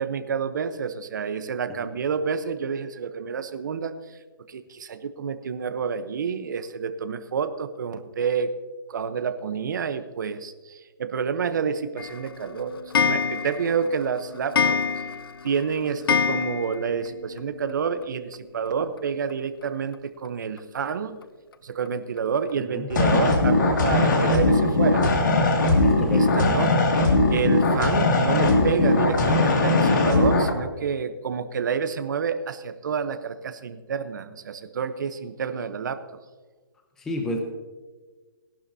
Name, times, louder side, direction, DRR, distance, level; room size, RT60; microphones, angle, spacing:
voice 1, 0.0-3.9 4.5-8.5 8.9-14.8 15.4-21.2 21.6-25.0 26.1-26.7 27.3-36.2, right 6 dB, 50° right, 10 dB, 1.0 m, -29 dB
Clock, 12.0-17.1 17.4-17.5 17.7-17.8 18.0-18.1 19.3-19.4 19.9-20.0 20.6-20.7 21.2-21.3 21.9-22.0 22.5-22.6, left 6 dB, 65° left, 0.6 m, -26 dB
sound 1, 22.9-30.5, left 2 dB, 50° left, 2.4 m, -20 dB
voice 2, 25.8-26.4 37.0-37.4, left 1 dB, 5° left, 3 dB, 0.6 m, -31 dB
18.0 x 11.5 x 2.8 m, 1.4 s
hypercardioid pair, 165°, 13 cm